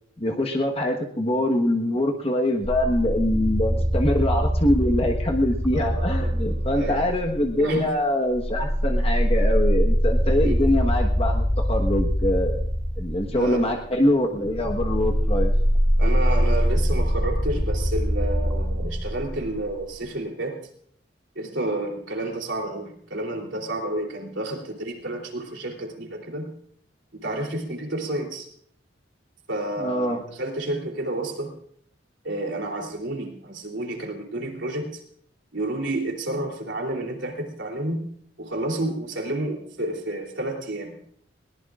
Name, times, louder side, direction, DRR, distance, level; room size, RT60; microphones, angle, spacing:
voice 1, 0.2-12.7 13.0-15.5 29.8-30.2, left 1 dB, 30° left, 2 dB, 1.3 m, -24 dB
sound 1, 2.6-7.8 8.3-19.8, equal, ahead, 2.9 m, -23 dB
voice 2, 5.7-6.3 6.7-7.0 7.6-7.9 10.4-10.7 13.3-13.6 16.0-20.6 21.3-26.5 27.1-28.5 29.5-31.5 32.2-35.0 35.5-38.0 38.4-41.0, right 1 dB, 75° right, 1 dB, 3.3 m, -30 dB
21.0 x 19.0 x 2.5 m, 0.65 s
head